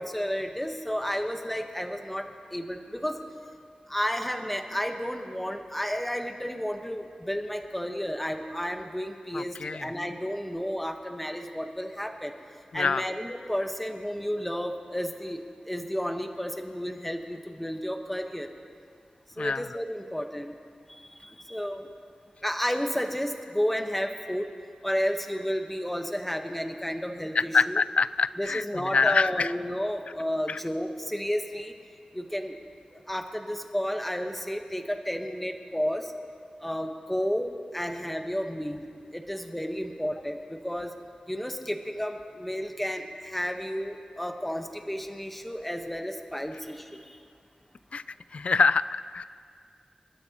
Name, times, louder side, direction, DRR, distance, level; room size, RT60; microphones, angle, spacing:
voice 1, 0.0-3.2 3.9-12.3 12.7-18.5 19.4-20.6 20.9-21.9 22.4-24.5 24.8-27.8 28.4-31.7 32.1-32.6 32.9-36.1 36.6-40.9 41.3-47.2, equal, 5° left, 4 dB, 1.1 m, -32 dB
voice 2, 9.3-9.9 12.7-13.0 19.4-19.7 27.3-29.5 30.5-30.6 47.9-48.0 48.3-49.2, left 4 dB, 60° left, 16 dB, 0.3 m, -25 dB
28.0 x 12.5 x 2.9 m, 2.2 s
wide cardioid pair, 95°, 2 cm